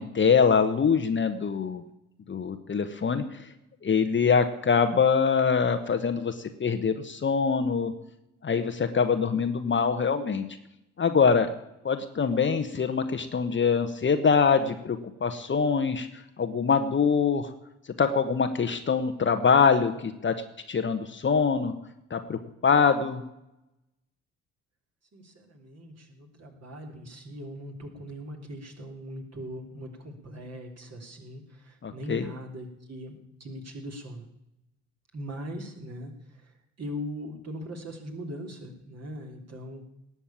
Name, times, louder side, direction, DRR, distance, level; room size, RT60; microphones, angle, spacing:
voice 1, 0.0-1.8 2.3-3.5 3.8-7.9 8.4-10.4 11.0-11.5 11.8-17.5 18.0-21.7 22.1-23.2 31.8-32.3, left 5 dB, 30° left, 8 dB, 1.2 m, -24 dB
voice 2, 25.1-34.3 35.1-36.1 36.8-39.8, equal, 40° right, 2 dB, 3.3 m, -40 dB
18.5 x 7.1 x 8.6 m, 0.86 s
figure-of-eight pair, 45°, 40 cm